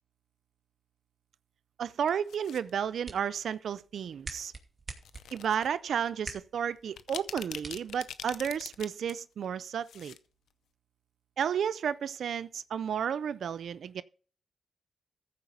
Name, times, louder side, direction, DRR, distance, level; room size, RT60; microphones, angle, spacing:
voice 1, 1.8-4.5 5.3-10.2 11.4-14.0, right 8 dB, 75° right, 0.4 m, -32 dB
sound 1, 1.9-2.7 3.5-3.8 5.0-5.7 6.1-6.2 6.8-9.1 9.4-10.2 10.5-10.6, left 9 dB, 90° left, 0.6 m, -43 dB
sound 2, 2.6-8.6, right 3 dB, 35° right, 2.5 m, -48 dB
14.5 x 4.8 x 6.6 m
cardioid pair, 70°, 0 cm